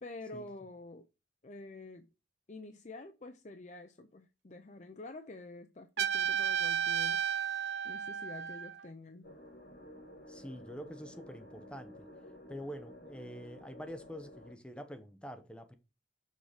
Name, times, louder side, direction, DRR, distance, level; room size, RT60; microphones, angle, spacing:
voice 1, 0.0-1.0 1.4-2.1 2.5-7.2 7.8-9.3, left 2 dB, 40° left, 0.5 m, -48 dB
Trumpet, 6.0-8.8, right 8 dB, 65° right, 0.6 m, -33 dB
sound 1, 9.2-14.5, left 1 dB, 60° left, 4.3 m, -52 dB
voice 2, 10.3-12.1 12.5-15.7, equal, 5° left, 0.8 m, -46 dB
6.5 x 4.6 x 4.9 m
head